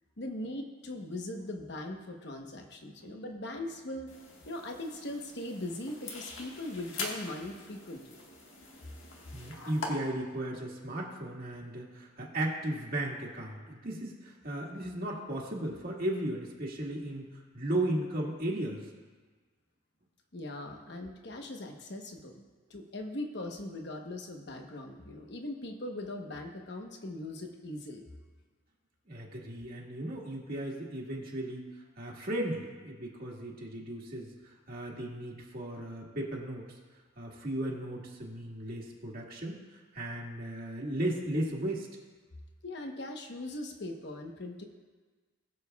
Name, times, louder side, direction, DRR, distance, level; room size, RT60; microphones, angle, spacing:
voice 1, 0.2-8.2 20.3-28.1 42.6-44.6, left 1 dB, 60° left, 3 dB, 1.0 m, -40 dB
sound 1, 4.1-9.9, left 3 dB, 90° left, 1.6 m, -43 dB
voice 2, 9.3-18.9 29.1-31.7 32.0-36.7 37.2-41.9, right 1 dB, 50° right, -3 dB, 1.7 m, -36 dB
20.5 x 7.2 x 2.3 m, 1.4 s
head